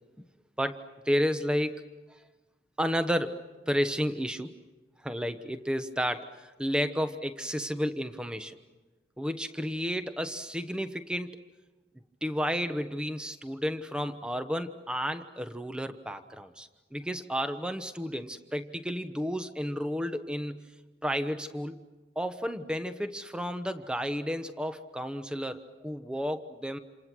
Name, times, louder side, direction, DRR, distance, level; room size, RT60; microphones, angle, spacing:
voice 1, 0.6-1.8 2.8-4.5 5.0-8.6 9.2-11.4 12.2-20.7 21.0-21.8 22.1-26.8, equal, 5° right, 9 dB, 1.0 m, -32 dB
28.0 x 28.0 x 6.2 m, 1.2 s
head